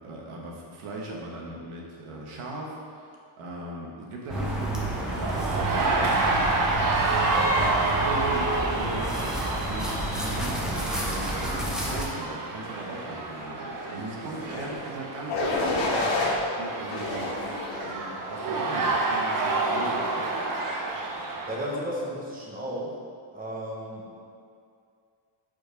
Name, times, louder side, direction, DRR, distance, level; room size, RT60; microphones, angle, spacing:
voice 1, 0.0-7.3 7.6-9.4 9.7-20.3, right 2 dB, 80° right, -2 dB, 1.4 m, -38 dB
sound 1, 4.3-12.1, right 1 dB, ahead, 0.6 m, -31 dB
sound 2, 5.1-21.7, right 3 dB, 40° right, 0.7 m, -29 dB
sound 3, 14.4-14.7 15.3-16.4 16.9-17.9 18.5-18.9, left 2 dB, 65° left, 1.4 m, -29 dB
voice 2, 21.5-23.0 23.3-24.2, equal, 15° right, -4 dB, 1.0 m, -34 dB
5.3 x 4.5 x 5.1 m, 2.4 s
cardioid pair, 170°, 49 cm